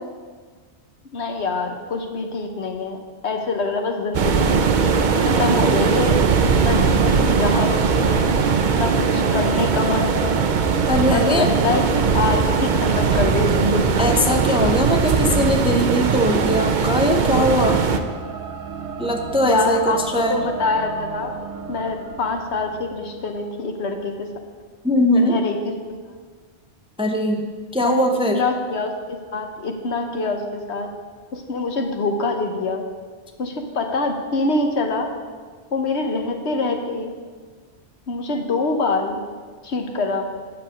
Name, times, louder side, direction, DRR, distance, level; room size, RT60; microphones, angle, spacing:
voice 1, 1.1-4.7 5.2-6.2 6.6-8.3 8.8-10.4 11.1-14.0 19.4-21.3 21.7-24.3 25.1-25.6 27.8-28.0 28.3-30.9 31.3-32.8 33.4-35.1 35.7-37.1 38.1-39.2 39.6-40.3, left 3 dB, 75° left, 4 dB, 1.3 m, -25 dB
sound 1, 4.1-18.0, right 5 dB, 50° right, 0.7 m, -19 dB
sound 2, 7.2-23.4, right 6 dB, 90° right, 1.1 m, -33 dB
voice 2, 10.9-11.5 14.0-17.8 19.0-20.4 24.8-25.4 27.0-27.5 27.7-28.4, equal, 5° right, 3 dB, 0.6 m, -20 dB
8.8 x 7.0 x 6.4 m, 1.6 s
omnidirectional pair, 1.1 m